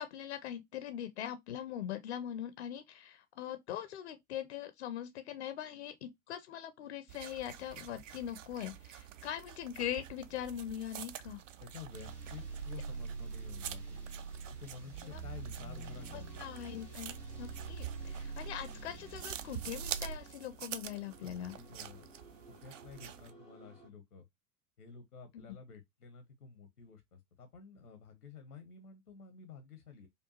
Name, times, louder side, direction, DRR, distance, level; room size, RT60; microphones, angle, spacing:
voice 1, 0.0-11.4 15.1-15.2 16.1-21.6 25.3-25.4, left 10 dB, 50° left, 0.5 m, -42 dB
sound 1, 7.1-23.3, right 11 dB, 60° right, 0.5 m, -47 dB
voice 2, 11.6-14.0 14.5-16.4 21.2-22.1 22.5-24.3 24.8-30.1, left 5 dB, 80° left, 1.0 m, -51 dB
sound 2, 11.9-20.2, right 5 dB, 85° right, 1.8 m, -44 dB
sound 3, 15.7-23.9, left 1 dB, ahead, 0.3 m, -59 dB
5.1 x 2.3 x 2.8 m
figure-of-eight pair, 90°, 45 cm